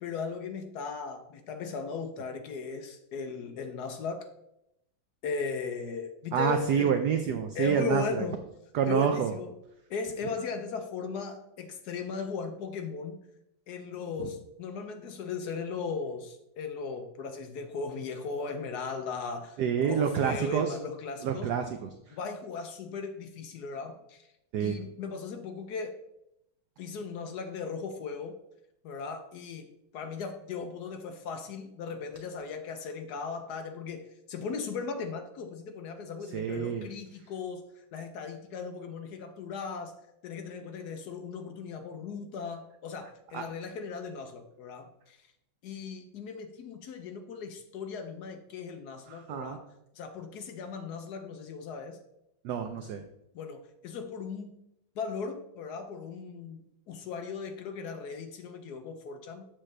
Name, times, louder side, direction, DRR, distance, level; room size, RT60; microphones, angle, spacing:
voice 1, 0.0-4.3 5.2-6.9 7.5-8.4 8.8-9.5 9.9-13.2 13.7-21.5 22.1-24.3 24.6-26.0 26.8-28.4 28.8-39.9 40.2-45.2 45.6-49.7 49.9-52.0 53.3-54.5 55.0-59.5, left 5 dB, 70° left, 6 dB, 0.9 m, -37 dB
voice 2, 6.3-8.2 8.7-9.3 14.2-14.3 19.6-20.7 21.2-21.9 24.5-24.8 36.3-36.8 43.3-43.4 49.1-49.6 52.4-53.0, right 8 dB, 85° right, 6 dB, 0.9 m, -28 dB
7.5 x 6.5 x 3.2 m, 0.82 s
omnidirectional pair, 2.4 m